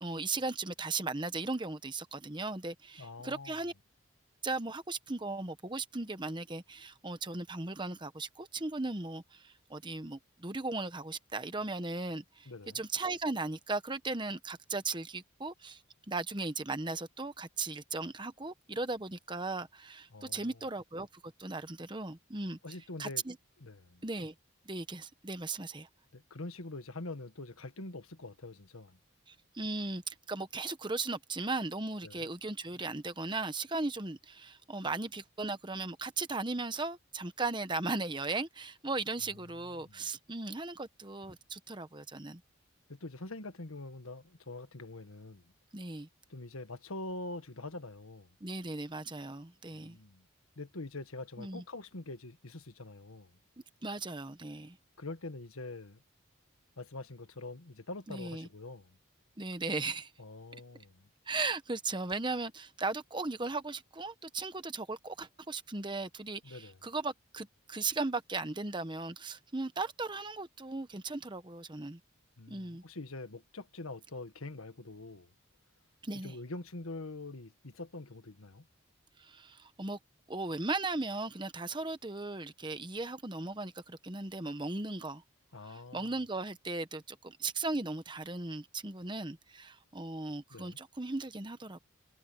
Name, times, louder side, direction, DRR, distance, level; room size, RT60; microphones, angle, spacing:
voice 1, 0.0-3.7 4.4-15.8 16.1-22.6 23.0-23.4 24.0-24.3 24.7-25.9 29.3-42.4 45.7-46.1 48.4-50.0 51.4-51.6 53.8-54.8 58.1-58.5 59.4-60.1 61.3-72.0 72.5-72.8 76.0-76.4 79.2-80.0 80.3-85.2 85.7-91.8, right 3 dB, 20° right, 1.0 m, -37 dB
voice 2, 3.0-3.6 12.4-12.8 20.1-20.6 22.6-23.2 23.6-24.0 26.1-29.0 32.0-32.3 39.5-40.1 42.9-45.4 46.3-48.3 49.7-50.2 50.5-53.3 55.0-56.0 56.8-59.0 60.2-61.1 66.4-66.8 72.4-75.3 76.2-78.7 85.5-86.2 90.5-90.8, left 2 dB, 85° left, 1.6 m, -44 dB
head